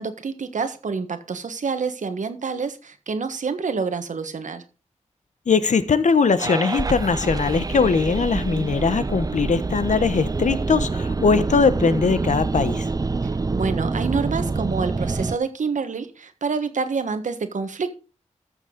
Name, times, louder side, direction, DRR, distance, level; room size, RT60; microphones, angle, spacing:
voice 1, 0.0-4.6 13.5-17.9, right 5 dB, 80° right, 1.3 m, -27 dB
voice 2, 5.5-12.9, left 5 dB, 75° left, 1.0 m, -20 dB
sound 1, 6.4-15.4, right 3 dB, 30° right, 0.5 m, -26 dB
14.0 x 7.0 x 3.9 m
wide cardioid pair, 90°, 13 cm